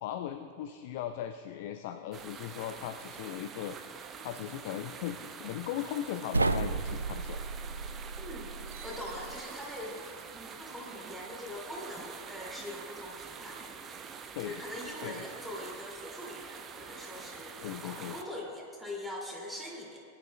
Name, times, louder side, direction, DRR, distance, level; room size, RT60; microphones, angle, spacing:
voice 1, 0.0-3.8 4.2-7.4 14.3-14.6 15.0-15.2 17.6-18.2, left 11 dB, 50° left, 10 dB, 0.4 m, -38 dB
sound 1, 2.1-18.2, right 6 dB, 25° right, 0.7 m, -46 dB
sound 2, 6.3-9.4, right 3 dB, 80° right, 0.3 m, -33 dB
voice 2, 8.2-8.5 8.8-10.0 10.3-13.7 14.4-20.0, left 1 dB, ahead, -4 dB, 2.7 m, -42 dB
sound 3, 8.7-13.9, right 5 dB, 55° right, 2.1 m, -58 dB
19.5 x 10.5 x 2.3 m, 2.3 s
figure-of-eight pair, 90°, 0 cm